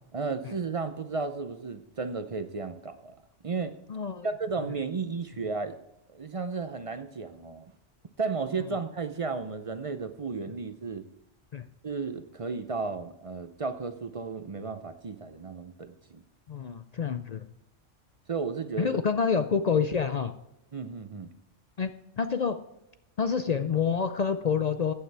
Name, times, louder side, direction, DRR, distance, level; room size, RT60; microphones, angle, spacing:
voice 1, 0.1-3.1 3.4-3.8 4.2-5.8 6.1-7.6 8.2-11.0 11.8-16.2 18.3-19.0 20.7-21.3, right 4 dB, 40° right, 10 dB, 0.5 m, -33 dB
voice 2, 3.9-4.3 11.5-11.7 16.5-17.4 18.8-20.3 21.8-21.9 22.2-22.6 23.2-24.9, left 6 dB, 60° left, 9 dB, 0.4 m, -27 dB
14.5 x 8.8 x 3.4 m, 0.88 s
omnidirectional pair, 1.3 m